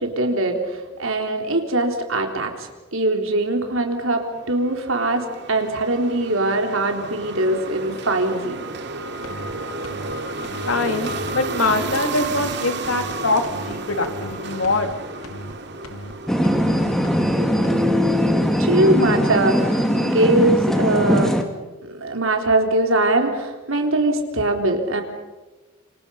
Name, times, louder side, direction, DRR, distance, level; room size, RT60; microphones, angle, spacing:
voice 1, 0.0-8.6 18.6-21.4 21.8-25.0, right 2 dB, 70° right, 4 dB, 3.8 m, -22 dB
sound 1, 4.2-18.5, right 3 dB, 55° right, 2.4 m, -32 dB
sound 2, 9.2-9.5 9.8-10.1 10.4-10.7 11.0-11.3 11.6-11.9 12.2-12.5 12.8-13.1 13.4-13.7 14.0-14.3 14.6-14.9 15.2-15.5 15.8-16.1 16.4-16.7 17.0-17.3 17.6-17.9, equal, 90° left, 3.0 m, -37 dB
voice 2, 10.7-14.9, left 2 dB, 75° left, 6 dB, 2.8 m, -23 dB
sound 3, 16.3-21.4, equal, ahead, 2.1 m, -20 dB
28.5 x 27.0 x 5.7 m, 1.2 s
head